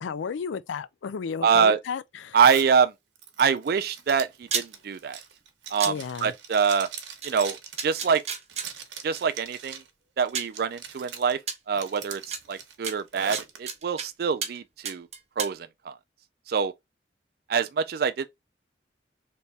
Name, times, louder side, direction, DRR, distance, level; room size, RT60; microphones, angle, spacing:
voice 1, 0.0-2.4 5.8-6.3, left 6 dB, 85° left, 0.4 m, -33 dB
voice 2, 1.4-1.8 2.3-2.9 3.4-5.2 5.7-5.9 6.2-6.9 7.2-7.6 7.8-8.2 9.0-9.8 10.2-11.4 11.7-12.2 12.5-15.1 15.4-15.9 16.5-16.7 17.5-18.3, right 6 dB, 55° right, 0.4 m, -24 dB
Zipper (clothing), 2.4-2.7 3.2-9.9 10.3-11.3 11.7-13.6, right 7 dB, 85° right, 1.0 m, -42 dB
sound 1, 4.4-4.7 5.8-5.9 7.2-7.3 7.8-8.7 9.7-9.8 10.3-10.6 11.5-11.6 12.3-12.4 12.8-14.1 14.4-14.6 14.8-15.5, right 6 dB, 35° right, 0.7 m, -31 dB
3.5 x 3.0 x 4.0 m
head